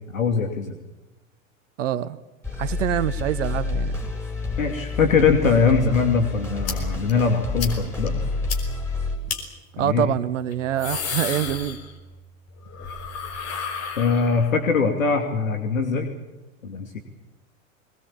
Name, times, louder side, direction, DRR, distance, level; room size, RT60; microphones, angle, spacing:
voice 1, 0.1-0.8 4.6-8.2 9.8-10.1 14.0-16.1 16.6-17.0, left 5 dB, 75° left, 2.7 m, -22 dB
voice 2, 1.8-2.2 2.6-4.0 9.7-11.8, right 11 dB, 65° right, 1.1 m, -25 dB
sound 1, 2.4-9.2, left 3 dB, 5° left, 6.1 m, -29 dB
sound 2, 6.7-6.8 7.1-7.2 7.6-7.7 8.1-8.2 8.5-8.6 9.3-9.4 10.5-12.2 12.5-14.6, left 6 dB, 40° left, 5.3 m, -31 dB
22.5 x 20.5 x 8.8 m
figure-of-eight pair, 90°, 40 cm